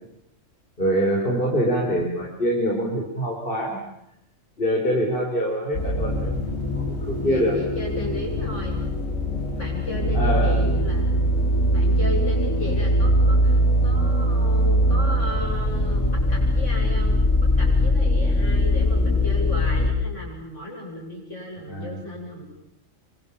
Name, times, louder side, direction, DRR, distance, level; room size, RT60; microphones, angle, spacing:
voice 1, 0.8-3.8 4.6-6.4 6.8-7.5 10.1-10.7 21.7-22.1, equal, 40° left, -2 dB, 4.9 m, -24 dB
sound 1, 5.7-19.9, equal, 85° left, 6.0 m, -21 dB
voice 2, 7.2-8.8 9.3-11.2 11.7-22.4, left 1 dB, 65° left, -1 dB, 8.2 m, -34 dB
28.5 x 24.5 x 7.4 m, 0.81 s
omnidirectional pair, 1.4 m